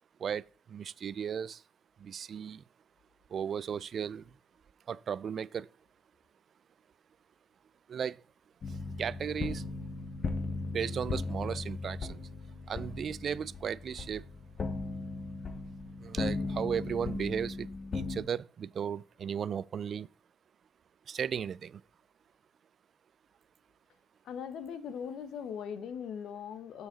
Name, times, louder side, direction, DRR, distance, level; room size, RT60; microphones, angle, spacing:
voice 1, 0.2-1.6 2.0-2.6 3.3-4.2 4.9-5.7 7.9-8.2 9.0-9.6 10.7-12.2 12.7-14.2 16.0-17.7 17.9-20.1 21.1-21.8, right 7 dB, 55° right, 0.3 m, -35 dB
sound 1, 8.6-18.2, left 3 dB, 45° left, 1.1 m, -37 dB
voice 2, 24.2-26.9, left 7 dB, 75° left, 1.0 m, -40 dB
7.0 x 6.3 x 4.0 m
cardioid pair, 90°, 0 cm